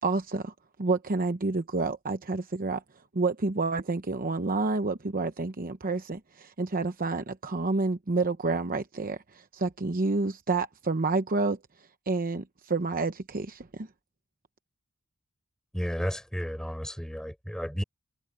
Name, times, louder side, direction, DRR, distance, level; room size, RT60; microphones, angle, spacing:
voice 1, 0.0-2.8 3.1-11.6 12.1-13.9, right 3 dB, 40° right, 0.9 m, -29 dB
voice 2, 15.7-17.8, equal, 5° left, 5.2 m, -32 dB
head